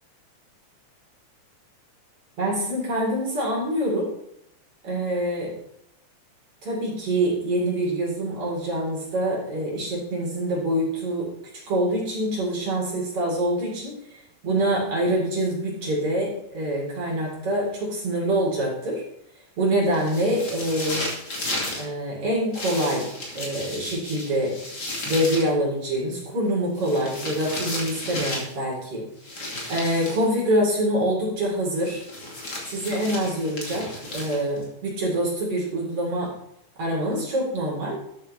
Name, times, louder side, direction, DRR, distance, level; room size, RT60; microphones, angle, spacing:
voice 1, 2.4-4.1 4.8-5.6 6.6-11.3 11.7-19.0 19.6-21.1 21.8-23.1 23.3-24.6 25.0-29.1 29.7-32.0 32.7-36.3 36.8-38.0, right 1 dB, 50° right, -4 dB, 5.0 m, -25 dB
sound 1, 19.9-21.9 22.5-25.5 26.8-28.6 29.2-30.3 31.8-34.6, left 1 dB, 35° left, 2.8 m, -33 dB
12.5 x 9.1 x 3.4 m, 0.78 s
omnidirectional pair, 3.4 m